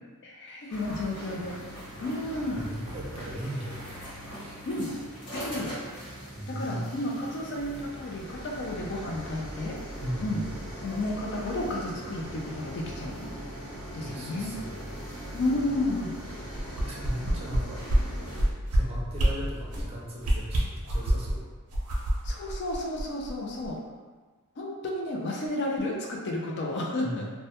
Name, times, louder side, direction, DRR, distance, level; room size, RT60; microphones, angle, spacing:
voice 1, 0.2-1.6 2.0-2.6 4.7-4.9 5.3-5.7 6.5-9.8 10.2-10.4 10.8-13.4 13.9-14.5 15.3-16.2 17.2-17.3 22.2-23.8 24.6-27.3, left 1 dB, 50° left, -2 dB, 0.4 m, -32 dB
sound 1, 0.7-18.5, equal, 80° left, 1.0 m, -41 dB
voice 2, 2.5-4.0 4.4-4.6 6.3-6.9 10.0-10.5 14.0-14.9 16.8-17.8 18.7-21.5 27.0-27.3, right 1 dB, 25° right, -5 dB, 0.4 m, -37 dB
sound 2, 7.6-20.0, equal, 10° right, 0.9 m, -44 dB
sound 3, 16.5-17.6 17.9-18.0 18.3-18.8 19.1-19.3 19.7-19.9 20.2-21.3 21.7-23.3 23.6-23.7, right 1 dB, 90° right, 0.5 m, -25 dB
2.2 x 2.1 x 2.8 m, 1.4 s
head